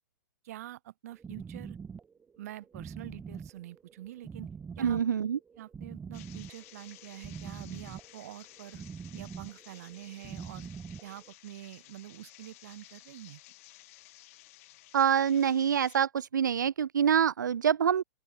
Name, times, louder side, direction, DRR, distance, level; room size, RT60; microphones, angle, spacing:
voice 1, 0.4-1.8 2.4-4.5 4.8-5.0 5.6-8.8 9.1-10.7 11.0-13.4, right 14 dB, 55° right, 3.3 m, -46 dB
sound 1, 1.1-11.3, right 6 dB, 15° right, 3.3 m, -44 dB
voice 2, 4.8-5.4 14.9-18.0, right 8 dB, 75° right, 0.4 m, -26 dB
sound 2, 6.1-16.1, left 20 dB, 45° left, 4.6 m, -55 dB
open air
figure-of-eight pair, 110°, 10 cm